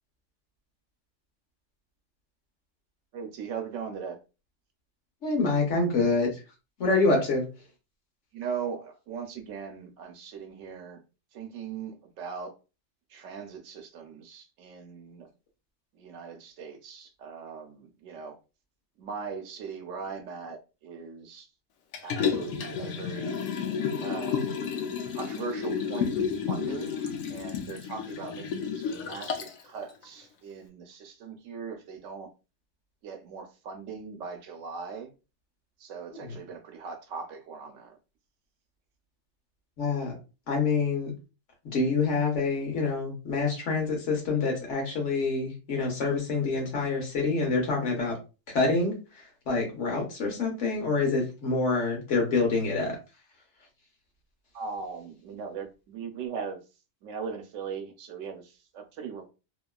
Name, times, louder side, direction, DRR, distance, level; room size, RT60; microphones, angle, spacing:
voice 1, 3.1-4.2 8.3-11.0 11.3-12.5 13.1-15.3 15.9-18.4 19.0-21.5 22.0-23.3 24.0-24.4 25.1-32.3 33.0-35.1 35.8-38.0 54.5-56.6 57.0-59.3, right 6 dB, 75° right, 0.9 m, -39 dB
voice 2, 5.2-6.3 6.8-7.5 36.2-36.4 39.8-40.1 40.5-41.1 41.7-48.2 48.5-53.0, left 3 dB, 65° left, 1.2 m, -26 dB
Liquid, 21.9-29.6 30.0-30.1, left 6 dB, 85° left, 1.0 m, -31 dB
2.8 x 2.3 x 2.3 m
omnidirectional pair, 1.4 m